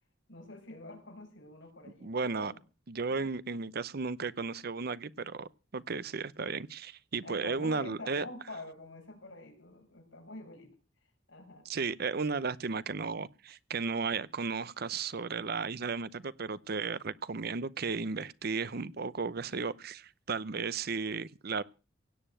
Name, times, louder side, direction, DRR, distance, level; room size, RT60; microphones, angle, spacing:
voice 1, 0.3-2.6 3.1-3.3 7.2-10.7 11.3-11.7, left 2 dB, 70° left, 5.9 m, -47 dB
voice 2, 2.0-2.5 2.9-8.2 11.7-21.6, right 4 dB, 50° right, 0.7 m, -34 dB
17.0 x 6.9 x 9.0 m
head